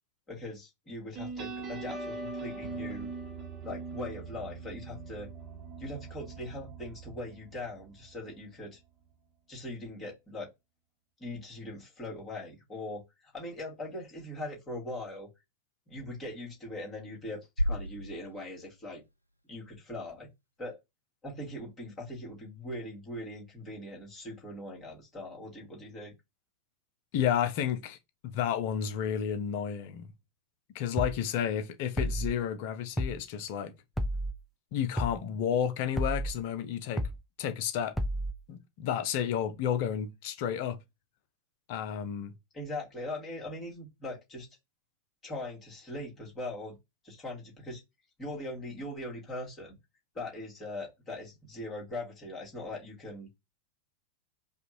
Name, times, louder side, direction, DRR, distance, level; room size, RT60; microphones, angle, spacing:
voice 1, 0.3-3.1 3.6-5.3 5.8-8.8 9.5-10.5 11.2-15.3 15.9-19.0 19.5-20.3 20.6-20.8 21.2-26.1 42.5-44.5 45.2-46.8 47.0-47.8 48.2-49.8 50.1-53.3, left 1 dB, 20° left, 2.2 m, -41 dB
sound 1, 1.1-8.3, right 3 dB, 30° right, 1.2 m, -41 dB
sound 2, 17.6-19.7, equal, 90° left, 0.3 m, -34 dB
voice 2, 27.1-28.0 28.2-30.1 30.7-33.7 34.7-37.1 37.4-37.9 38.5-40.8 41.7-42.3, left 9 dB, 45° left, 0.6 m, -31 dB
sound 3, 31.0-31.2 32.0-32.3 33.0-33.2 34.0-34.3 35.0-35.2 36.0-36.3 37.0-37.2 38.0-38.3, equal, ahead, 0.6 m, -31 dB
5.0 x 2.4 x 3.0 m
figure-of-eight pair, 90°, 0 cm